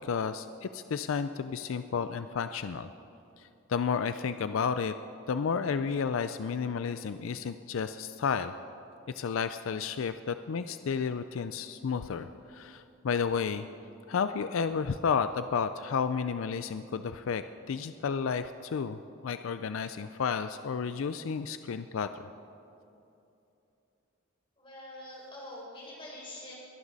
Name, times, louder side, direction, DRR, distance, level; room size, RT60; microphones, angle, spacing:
voice 1, 0.0-2.9 3.4-4.9 5.3-8.5 9.1-13.7 14.1-22.3, left 6 dB, 80° left, 11 dB, 0.4 m, -32 dB
voice 2, 24.6-26.5, left 1 dB, 25° left, -4 dB, 4.1 m, -45 dB
21.5 x 11.0 x 4.1 m, 2.8 s
head